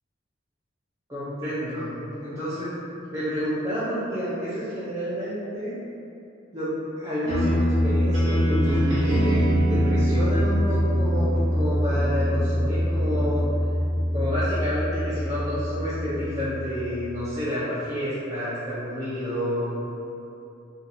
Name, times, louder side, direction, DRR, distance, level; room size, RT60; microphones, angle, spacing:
voice 1, 1.1-5.8 6.5-6.7 7.0-13.4 14.1-19.8, equal, 15° right, -13 dB, 0.6 m, -29 dB
sound 1, 7.2-17.3, equal, 80° right, 0.8 m, -23 dB
2.7 x 2.4 x 4.1 m, 2.8 s
head